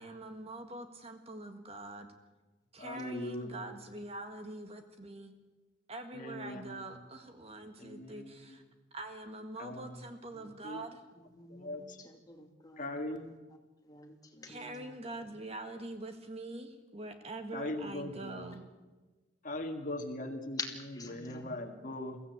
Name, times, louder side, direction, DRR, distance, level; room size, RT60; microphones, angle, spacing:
voice 1, 0.0-2.1 2.7-5.4 5.9-8.6 8.9-11.0 14.4-18.7, right 2 dB, 30° right, 6 dB, 1.7 m, -44 dB
voice 2, 2.8-3.7 6.1-6.9 7.8-8.5 9.6-10.0 10.4-10.9 11.5-12.0 12.8-13.4 17.5-18.5 19.4-22.2, left 1 dB, 45° left, 5 dB, 1.7 m, -40 dB
voice 3, 11.4-11.9 12.3-12.8 13.9-14.7 20.6-20.7 21.0-21.5, left 4 dB, 20° left, 2 dB, 2.4 m, -45 dB
22.5 x 15.5 x 8.3 m, 1.2 s
head